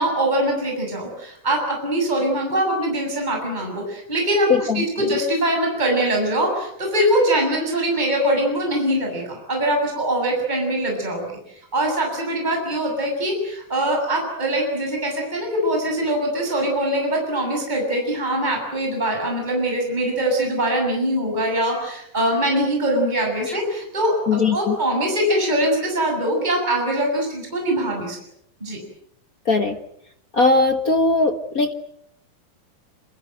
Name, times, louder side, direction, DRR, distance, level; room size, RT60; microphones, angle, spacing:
voice 1, 0.0-24.1 24.5-28.2 28.6-28.8, right 1 dB, 10° right, 1 dB, 7.1 m, -22 dB
voice 2, 4.5-4.8 23.4-23.6 24.3-24.8 29.4-29.8 30.3-31.7, left 3 dB, 65° left, 7 dB, 0.8 m, -19 dB
27.0 x 26.5 x 7.9 m, 0.72 s
omnidirectional pair, 4.1 m